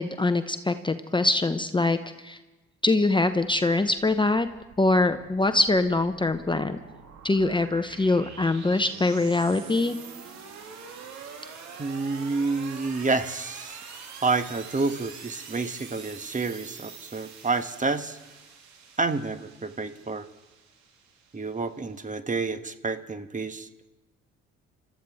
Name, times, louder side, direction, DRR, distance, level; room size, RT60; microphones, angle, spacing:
voice 1, 0.0-2.4 2.8-4.5 4.8-6.8 7.2-10.0, left 2 dB, 15° left, 9 dB, 0.9 m, -23 dB
sound 1, 3.5-22.0, right 6 dB, 65° right, 2.8 m, -45 dB
voice 2, 11.8-13.8 14.2-18.2 19.0-20.3 21.3-23.7, right 3 dB, 25° right, 9 dB, 1.3 m, -29 dB
28.5 x 13.5 x 3.6 m, 1.1 s
hypercardioid pair, 60°, 30 cm